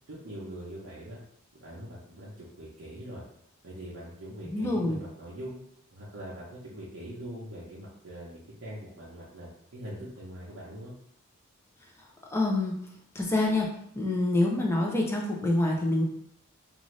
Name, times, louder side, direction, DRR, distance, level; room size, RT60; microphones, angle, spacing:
voice 1, 0.1-1.2 1.5-3.2 3.6-5.6 5.9-10.9, equal, 70° right, -7 dB, 0.7 m, -42 dB
voice 2, 4.5-5.0 12.3-12.8 13.1-13.7 13.9-16.0, left 2 dB, 10° left, -2 dB, 0.4 m, -26 dB
2.5 x 2.5 x 3.1 m, 0.71 s
head